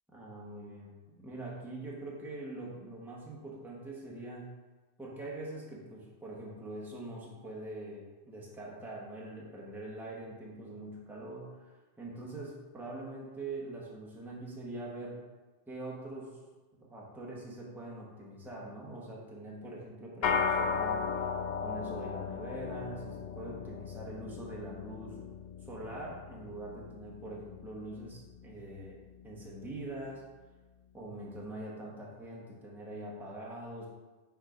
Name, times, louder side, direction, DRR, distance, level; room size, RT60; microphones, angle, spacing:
voice 1, 0.1-4.5 5.0-15.2 15.7-16.4 16.7-21.2 21.6-25.2 25.6-29.0 29.2-30.3 30.9-33.9, right 2 dB, ahead, -5 dB, 1.1 m, -43 dB
sound 1, 20.2-29.8, left 5 dB, 55° left, 0.5 m, -37 dB
6.4 x 3.7 x 5.0 m, 1.2 s
omnidirectional pair, 1.1 m